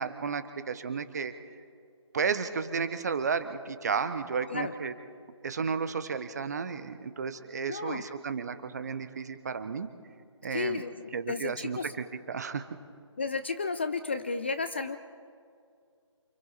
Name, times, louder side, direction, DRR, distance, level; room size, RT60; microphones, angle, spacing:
voice 1, 0.0-1.3 2.1-4.9 5.4-9.9 10.4-10.8 11.1-12.7, right 5 dB, 35° right, 11 dB, 1.0 m, -33 dB
voice 2, 4.4-4.9 7.7-8.1 10.5-11.9 13.2-15.0, left 4 dB, 20° left, 10 dB, 0.4 m, -33 dB
29.0 x 26.0 x 4.1 m, 2.3 s
figure-of-eight pair, 150°, 16 cm